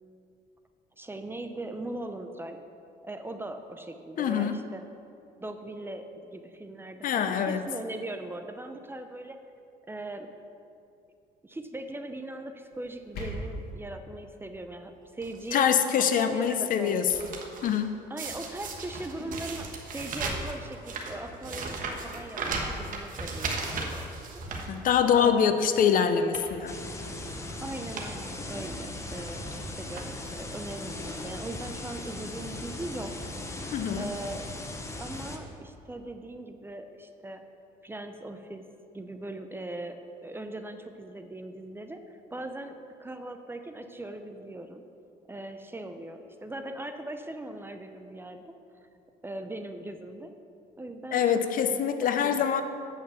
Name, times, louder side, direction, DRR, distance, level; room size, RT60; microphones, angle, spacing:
voice 1, 1.0-2.6 3.0-4.9 5.4-9.4 9.9-10.3 11.4-15.7 16.0-17.1 18.1-24.1 25.1-25.5 27.6-33.1 34.0-34.5 35.0-37.4 37.8-38.6 38.9-42.7 43.0-44.8 45.3-48.5 49.2-50.3 50.8-51.2 51.6-52.4, right 1 dB, 15° right, 7 dB, 0.5 m, -39 dB
voice 2, 4.2-4.6 7.0-7.6 15.5-17.1 17.6-17.9 24.7-26.7 33.7-34.1 51.1-52.6, left 8 dB, 55° left, 9 dB, 0.6 m, -24 dB
sound 1, 12.7-13.7, left 1 dB, 70° left, 1.9 m, -38 dB
sound 2, 15.2-15.6 16.2-16.6 16.8-17.8 18.2-25.3 25.7-25.8 26.2-26.6 27.4-27.5 27.8-28.1 28.4-28.5 29.4-29.6 29.9-30.4 31.2-31.3 31.5-31.6, right 3 dB, 50° right, 1.3 m, -36 dB
sound 3, 26.7-35.4, left 2 dB, 15° left, 0.9 m, -38 dB
8.4 x 5.6 x 6.7 m, 2.6 s
cardioid pair, 110°, 17 cm